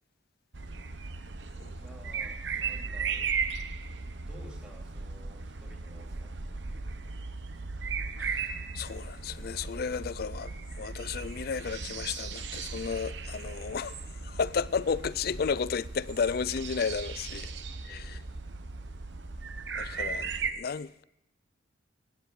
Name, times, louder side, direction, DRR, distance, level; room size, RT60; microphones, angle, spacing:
sound 1, 0.5-20.5, right 5 dB, 70° right, 1.0 m, -37 dB
voice 1, 1.7-3.3 4.1-6.3 6.6-7.1 17.3-17.6 17.8-18.2, equal, 5° right, 2.9 m, -54 dB
voice 2, 8.2-17.5 17.9-18.2 19.8-21.0, left 6 dB, 50° left, 0.4 m, -33 dB
17.5 x 8.2 x 6.5 m
head